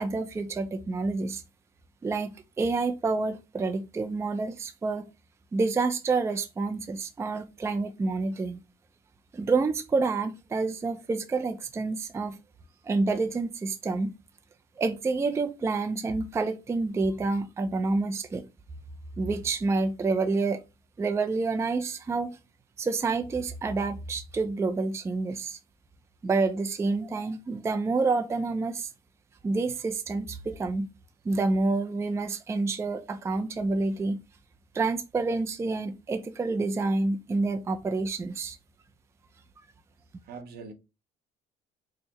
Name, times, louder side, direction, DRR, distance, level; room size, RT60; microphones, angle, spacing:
voice 1, 0.0-1.4 2.0-5.1 5.5-8.6 9.3-12.4 12.9-14.1 14.8-18.4 19.2-20.6 21.0-22.4 22.8-25.6 26.2-28.9 29.4-30.9 31.3-34.2 34.7-38.6, right 3 dB, 15° right, 0.4 m, -28 dB
voice 2, 40.2-40.7, right 5 dB, 70° right, 0.8 m, -42 dB
4.5 x 2.1 x 2.9 m
cardioid pair, 110°, 17 cm